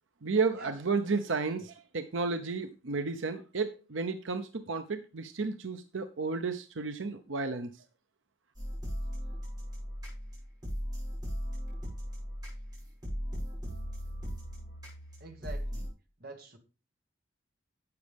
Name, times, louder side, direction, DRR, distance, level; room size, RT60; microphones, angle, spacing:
voice 1, 0.2-7.7, right 4 dB, 90° right, 8 dB, 0.8 m, -32 dB
voice 2, 1.1-1.6 12.8-12.9 15.2-15.9 16.2-16.6, right 3 dB, 50° right, 5 dB, 1.7 m, -47 dB
sound 1, 8.5-15.9, equal, 20° right, 6.2 m, -38 dB
12.0 x 8.1 x 3.5 m, 0.32 s
head